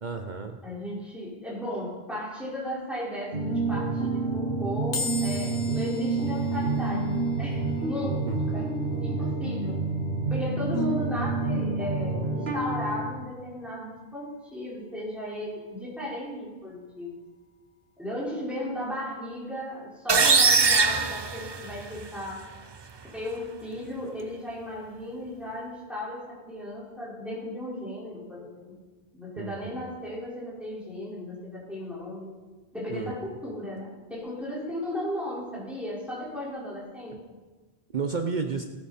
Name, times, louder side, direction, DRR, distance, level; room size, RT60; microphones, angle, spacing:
voice 1, 0.0-0.6 8.2-8.6 29.4-29.9 32.9-33.1 37.1-37.2 37.9-38.6, right 5 dB, 50° right, 5 dB, 0.9 m, -32 dB
voice 2, 0.6-8.7 9.0-9.8 10.3-17.2 18.0-22.4 23.1-28.7 29.1-32.3 32.7-37.2, left 1 dB, ahead, -7 dB, 4.7 m, -35 dB
sound 1, 3.3-13.1, right 3 dB, 85° right, 1.9 m, -28 dB
sound 2, 4.9-18.3, left 4 dB, 60° left, 1.4 m, -44 dB
sound 3, 20.1-22.0, right 4 dB, 30° right, 0.5 m, -21 dB
17.5 x 9.5 x 4.3 m, 1.3 s
omnidirectional pair, 1.0 m